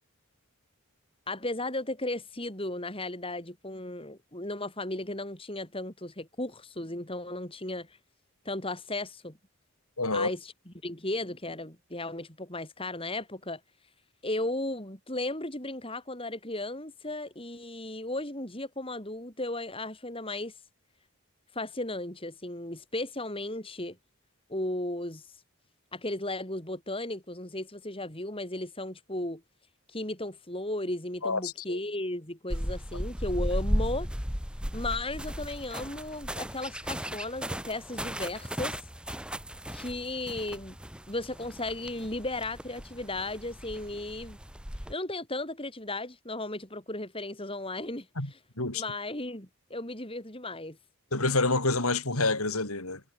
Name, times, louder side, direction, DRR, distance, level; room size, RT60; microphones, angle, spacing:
voice 1, 1.3-7.9 8.4-9.4 10.1-10.5 10.8-13.6 14.2-20.5 21.5-24.0 24.5-25.2 25.9-29.4 29.9-34.1 34.7-38.8 39.7-40.8 41.1-44.4 44.9-48.1 48.7-50.8, left 2 dB, 25° left, 5.8 m, -35 dB
voice 2, 10.0-10.3 31.2-31.8 48.2-48.3 48.6-48.8 51.1-53.0, left 3 dB, 75° left, 5.8 m, -28 dB
sound 1, 32.5-44.9, equal, 5° right, 7.2 m, -36 dB
head